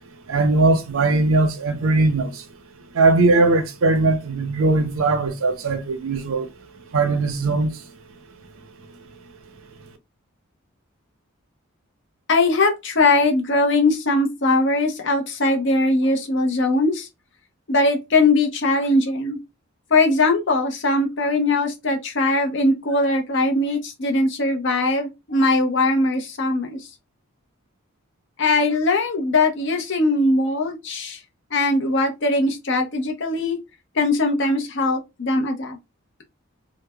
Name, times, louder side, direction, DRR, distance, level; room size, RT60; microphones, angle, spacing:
voice 1, 0.1-2.5 2.9-7.9, right 3 dB, 75° right, 0.5 m, -20 dB
voice 2, 12.3-17.1 17.7-19.4 19.9-26.8 28.4-31.2 31.5-33.6 34.0-35.8, left 2 dB, 55° left, 0.6 m, -20 dB
3.2 x 2.0 x 2.2 m
head